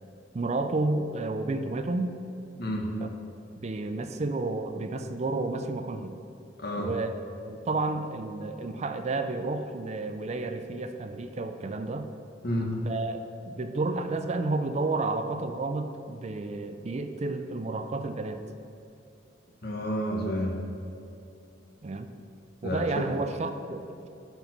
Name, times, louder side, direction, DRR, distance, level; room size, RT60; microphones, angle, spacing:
voice 1, 0.3-2.1 3.0-3.1 3.6-6.1 6.8-7.1 7.4-12.1 12.9-18.4 21.8-22.1 22.6-24.1, right 3 dB, 35° right, 8 dB, 0.4 m, -31 dB
voice 2, 2.6-2.9 6.6-6.9 12.4-12.8 19.6-20.5 22.6-23.0, equal, 60° left, 1 dB, 1.3 m, -30 dB
11.0 x 4.5 x 5.9 m, 2.8 s
head